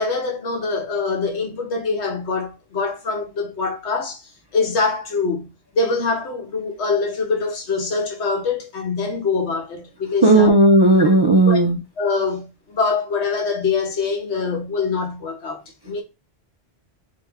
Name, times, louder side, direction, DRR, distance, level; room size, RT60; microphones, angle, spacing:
voice 1, 0.0-10.5 11.4-11.6 12.0-16.0, left 4 dB, 90° left, 1.3 m, -24 dB
voice 2, 10.2-11.8, right 2 dB, 35° right, 0.4 m, -14 dB
3.2 x 2.9 x 3.5 m
omnidirectional pair, 1.1 m